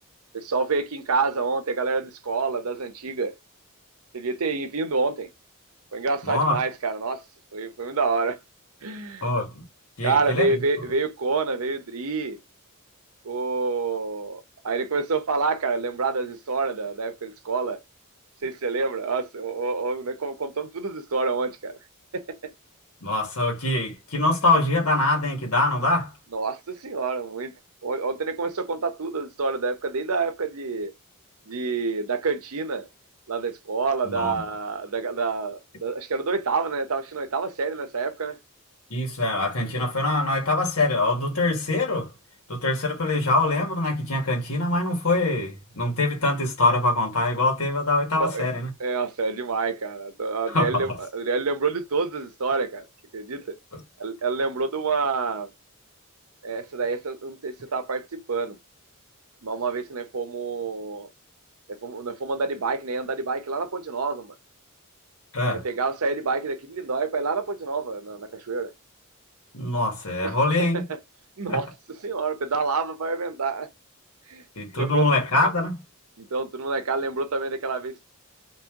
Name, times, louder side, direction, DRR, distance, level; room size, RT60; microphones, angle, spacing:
voice 1, 0.3-3.3 4.1-5.3 5.9-7.2 7.5-8.4 8.8-9.3 10.0-12.4 13.2-17.8 18.4-21.8 22.1-22.5 26.3-27.5 27.8-30.9 31.5-32.9 33.3-38.4 48.2-48.4 48.8-52.9 53.1-53.6 54.0-55.5 56.4-58.6 59.4-61.1 61.7-64.3 65.5-68.7 70.2-71.0 71.4-73.7 74.3-74.4 74.8-75.1 76.2-78.0, right 4 dB, 75° right, 0.8 m, -28 dB
voice 2, 6.2-6.6 9.2-9.5 10.0-10.5 23.0-26.1 34.0-34.4 38.9-42.1 42.5-48.7 50.5-51.0 65.3-65.6 69.5-70.8 71.5-71.6 74.5-75.8, left 2 dB, 70° left, 1.6 m, -24 dB
3.1 x 3.0 x 3.6 m
head